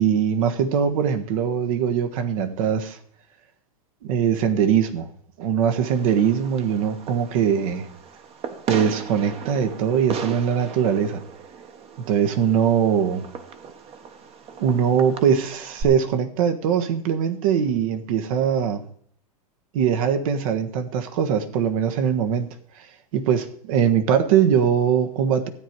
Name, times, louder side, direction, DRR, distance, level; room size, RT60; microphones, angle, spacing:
voice 1, 0.0-3.0 4.0-5.1 5.4-7.8 8.7-11.2 12.1-13.2 14.6-18.8 19.7-22.5 23.1-25.5, right 8 dB, 65° right, 1.5 m, -21 dB
Fireworks, 5.8-15.8, right 6 dB, 30° right, 1.1 m, -37 dB
13.0 x 8.9 x 4.7 m
supercardioid pair, 135°, 20 cm